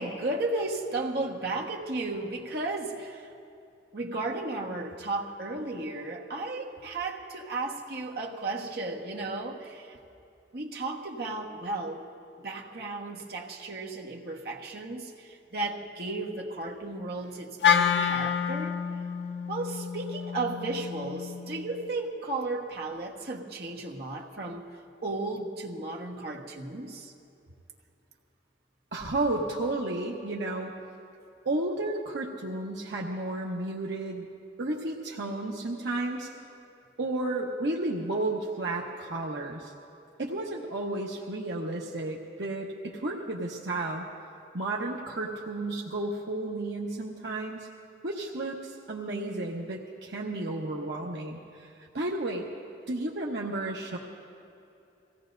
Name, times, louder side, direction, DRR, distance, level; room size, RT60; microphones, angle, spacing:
voice 1, 0.0-3.3 3.9-10.0 10.5-12.1 12.4-18.8 19.5-24.7 25.0-27.1, right 2 dB, 60° right, -2 dB, 1.4 m, -34 dB
Wind instrument woodwind instrument, 17.6-21.9, left 7 dB, 75° left, 0.6 m, -28 dB
voice 2, 28.9-30.8 31.4-34.3 34.6-36.3 37.0-39.7 40.2-44.0 44.5-47.7 48.0-52.5 52.9-54.0, right 2 dB, 75° right, -2 dB, 1.1 m, -32 dB
24.0 x 16.5 x 2.6 m, 2.7 s
head